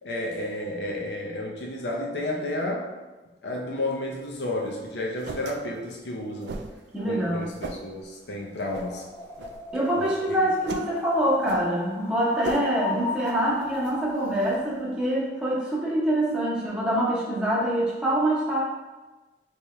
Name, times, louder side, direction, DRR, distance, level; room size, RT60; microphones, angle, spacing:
voice 1, 0.0-2.9 3.4-6.5 7.0-9.1 10.0-10.1, left 1 dB, 65° left, 0 dB, 0.7 m, -31 dB
sound 1, 4.1-14.8, right 3 dB, 65° right, 0.3 m, -41 dB
voice 2, 6.9-7.5 9.7-18.6, right 1 dB, 5° right, -7 dB, 0.9 m, -25 dB
sound 2, 8.7-14.5, left 4 dB, 15° left, 0.3 m, -38 dB
3.5 x 3.0 x 3.1 m, 1.2 s
head